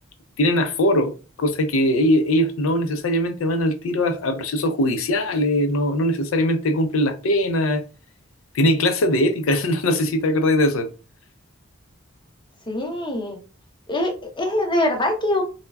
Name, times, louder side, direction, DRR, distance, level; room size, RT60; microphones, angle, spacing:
voice 1, 0.4-7.8 8.5-10.9, left 1 dB, 85° left, 0.5 m, -21 dB
voice 2, 12.7-13.4 13.9-15.4, left 1 dB, 25° left, 0.6 m, -23 dB
3.2 x 2.1 x 2.2 m
head